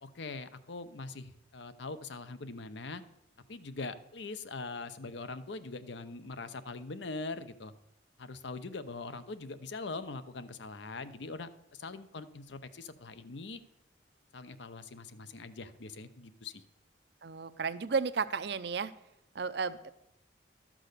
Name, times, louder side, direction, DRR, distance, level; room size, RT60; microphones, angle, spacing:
voice 1, 0.0-3.0 3.5-7.7 8.2-13.6 14.3-16.6, left 3 dB, 70° left, 12 dB, 0.7 m, -42 dB
voice 2, 17.2-18.9 19.4-19.9, right 5 dB, 55° right, 14 dB, 0.5 m, -33 dB
12.5 x 6.2 x 6.6 m, 0.83 s
head